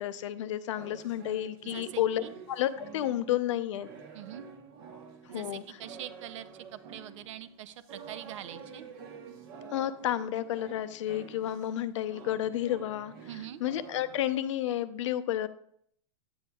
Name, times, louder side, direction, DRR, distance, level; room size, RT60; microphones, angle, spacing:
voice 1, 0.0-2.2 2.5-3.9 5.3-5.6 9.7-13.1 13.6-15.5, left 12 dB, 65° left, 12 dB, 0.6 m, -31 dB
sound 1, 0.8-11.8 12.0-14.2, right 6 dB, 45° right, 1.0 m, -48 dB
voice 2, 1.6-2.3 4.1-4.4 5.3-8.9 13.3-13.6, right 11 dB, 65° right, 14 dB, 0.5 m, -44 dB
9.1 x 8.6 x 2.3 m, 0.66 s
supercardioid pair, 160°, 17 cm